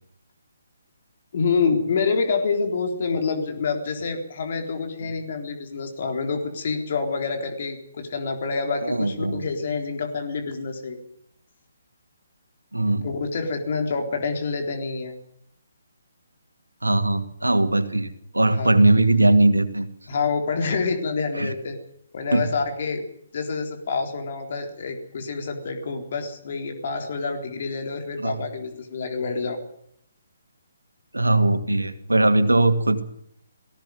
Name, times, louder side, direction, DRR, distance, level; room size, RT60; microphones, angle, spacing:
voice 1, 1.3-11.0 13.0-15.1 18.5-18.7 20.1-21.8 22.1-23.0 23.3-29.6, left 4 dB, 45° left, 4 dB, 3.8 m, -27 dB
voice 2, 8.8-9.4 12.7-13.1 16.8-18.1 18.3-19.9 21.4-21.5 22.3-22.4 28.2-28.4 31.1-33.0, right 2 dB, 80° right, 8 dB, 2.5 m, -20 dB
19.5 x 16.5 x 9.3 m, 0.71 s
figure-of-eight pair, 135°, 0 cm